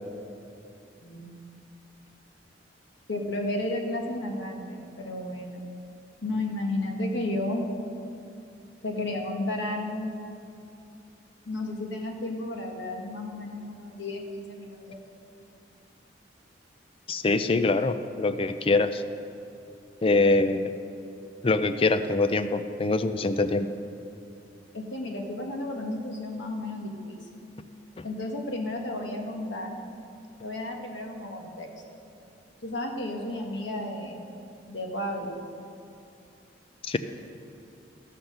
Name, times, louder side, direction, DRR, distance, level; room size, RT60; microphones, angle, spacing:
voice 1, 1.0-1.3 3.1-5.7 6.2-7.7 8.8-10.1 11.5-15.0 24.7-27.3 28.0-29.8 30.4-31.7 32.6-34.2 34.7-35.4, left 1 dB, 80° left, 2 dB, 1.4 m, -33 dB
voice 2, 17.1-19.0 20.0-20.7 21.4-23.7 28.0-28.1 36.9-37.0, left 3 dB, 30° left, 11 dB, 0.4 m, -24 dB
14.0 x 5.8 x 6.5 m, 2.6 s
head